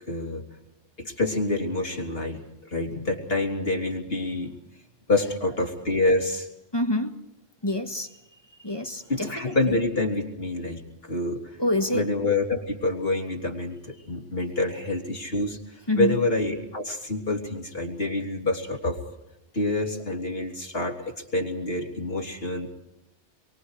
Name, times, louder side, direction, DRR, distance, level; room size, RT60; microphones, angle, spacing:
voice 1, 0.1-0.4 1.0-2.4 2.7-4.5 5.1-6.5 9.1-11.4 11.9-15.6 16.0-19.0 19.5-22.7, left 2 dB, 55° left, 2 dB, 3.5 m, -27 dB
voice 2, 6.7-7.2 7.6-8.1 8.6-9.8 11.6-12.1 15.9-16.2, left 1 dB, 20° left, 6 dB, 1.6 m, -27 dB
27.0 x 24.0 x 4.9 m, 0.88 s
omnidirectional pair, 1.2 m